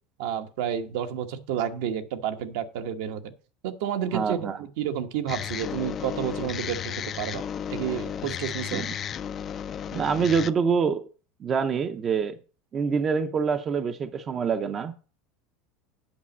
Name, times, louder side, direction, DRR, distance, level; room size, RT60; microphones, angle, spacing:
voice 1, 0.2-3.3 3.6-8.8, right 9 dB, 70° right, 1.1 m, -30 dB
voice 2, 4.1-4.6 8.7-8.9 9.9-11.1 11.4-12.4 12.7-14.9, right 6 dB, 25° right, 0.5 m, -26 dB
sound 1, 5.3-10.5, left 8 dB, 30° left, 0.3 m, -33 dB
8.7 x 5.2 x 7.1 m
supercardioid pair, 150°, 0 cm